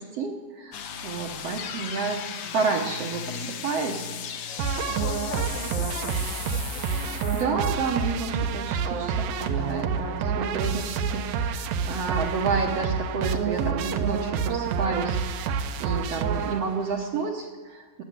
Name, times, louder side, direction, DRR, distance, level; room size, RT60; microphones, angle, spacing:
voice 1, 0.0-2.2 2.5-4.7 7.3-15.5 15.8-18.0, right 5 dB, 60° right, 2 dB, 1.7 m, -30 dB
sound 1, 0.7-7.4, left 8 dB, 65° left, 2.0 m, -36 dB
voice 2, 3.3-3.6 4.8-7.2, left 6 dB, 85° left, 7 dB, 2.9 m, -41 dB
sound 2, 4.6-17.0, right 6 dB, 80° right, 2.6 m, -28 dB
15.0 x 9.4 x 9.4 m, 1.4 s
omnidirectional pair, 4.2 m